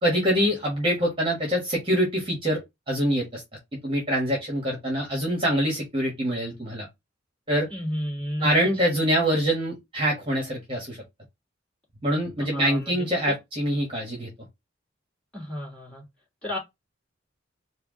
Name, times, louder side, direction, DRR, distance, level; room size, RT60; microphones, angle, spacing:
voice 1, 0.0-3.4 3.7-6.9 7.5-7.7 8.4-11.0 12.0-14.3, equal, 30° right, 1.4 m, -25 dB
voice 2, 7.7-8.5 12.4-13.3 15.3-16.0 16.4-16.6, left 1 dB, 5° left, 2.7 m, -32 dB
4.5 x 2.4 x 3.7 m
head